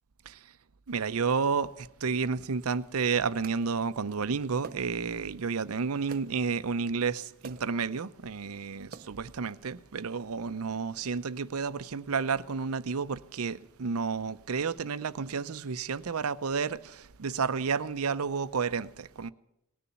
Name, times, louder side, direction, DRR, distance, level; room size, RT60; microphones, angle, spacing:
voice 1, 0.9-19.3, right 5 dB, 85° right, 0.6 m, -31 dB
sound 1, 3.4-3.6 4.6-5.1 6.1-6.5 7.4-7.8 8.8-9.3, right 5 dB, 40° right, 0.6 m, -48 dB
19.0 x 7.0 x 9.3 m
head